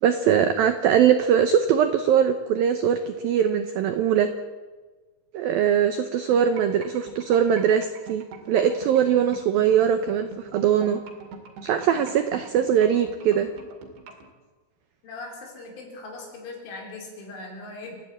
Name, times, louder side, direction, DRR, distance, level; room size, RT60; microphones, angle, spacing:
voice 1, 0.0-4.3 5.3-11.0 11.6-13.5, right 8 dB, 85° right, 9 dB, 2.1 m, -21 dB
sound 1, 6.3-14.3, right 5 dB, 65° right, 4.5 m, -43 dB
voice 2, 15.0-18.0, left 3 dB, 80° left, 1 dB, 6.6 m, -40 dB
29.5 x 11.0 x 8.7 m, 1.3 s
omnidirectional pair, 5.5 m